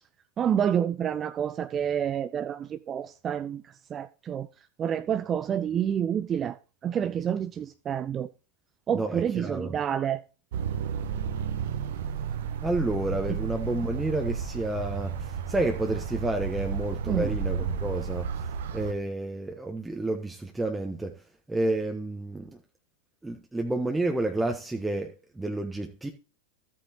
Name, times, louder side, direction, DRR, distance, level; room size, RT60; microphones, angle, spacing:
voice 1, 0.4-3.6 3.9-4.5 4.8-6.6 6.8-8.3 8.9-10.2 13.3-13.4 17.1-17.3, right 9 dB, 25° right, 0.5 m, -28 dB
voice 2, 8.9-9.7 12.6-18.3 18.7-21.1 21.5-22.6 23.2-26.1, right 2 dB, 5° right, 1.2 m, -30 dB
sound 1, 10.5-18.9, right 6 dB, 55° right, 1.0 m, -32 dB
14.5 x 8.4 x 3.0 m
figure-of-eight pair, 90°, 0 cm